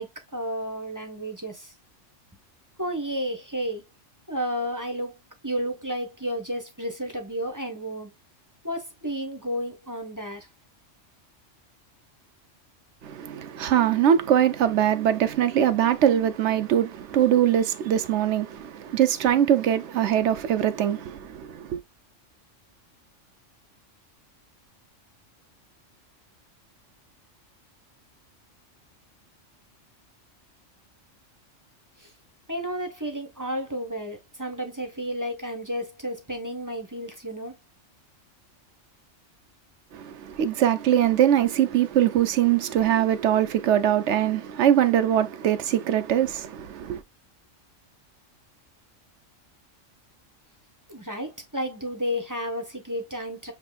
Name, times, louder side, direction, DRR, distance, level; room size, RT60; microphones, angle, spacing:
voice 1, 0.0-1.7 2.8-3.8 4.3-8.1 8.6-10.5 32.0-32.1 32.5-37.6 50.9-53.5, equal, 15° right, 0.9 m, -32 dB
voice 2, 13.0-21.8 39.9-47.0, right 10 dB, 70° right, 0.9 m, -22 dB
7.3 x 2.9 x 2.3 m
omnidirectional pair, 1.3 m